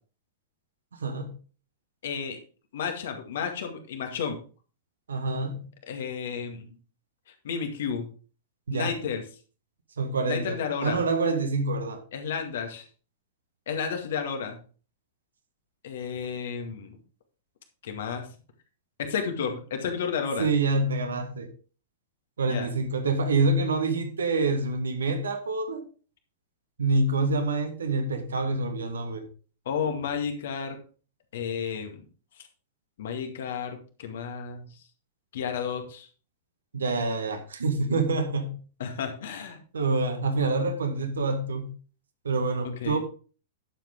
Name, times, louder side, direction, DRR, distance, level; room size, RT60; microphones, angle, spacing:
voice 1, 1.0-1.3 5.1-5.6 8.7-8.9 10.0-12.0 20.4-21.5 22.4-25.8 26.8-29.2 36.7-38.5 39.7-41.7 42.2-43.0, right 3 dB, 70° right, 1.8 m, -26 dB
voice 2, 2.0-2.4 2.7-4.4 5.9-6.7 7.4-8.1 8.7-9.2 10.3-11.0 12.1-12.9 13.7-14.6 15.8-17.0 17.8-18.3 19.0-20.5 22.5-22.7 29.7-30.8 31.3-32.0 33.0-34.7 35.3-36.1 38.8-39.6 42.6-43.0, left 6 dB, 55° left, 2.1 m, -32 dB
11.5 x 7.5 x 3.7 m
figure-of-eight pair, 100°, 0 cm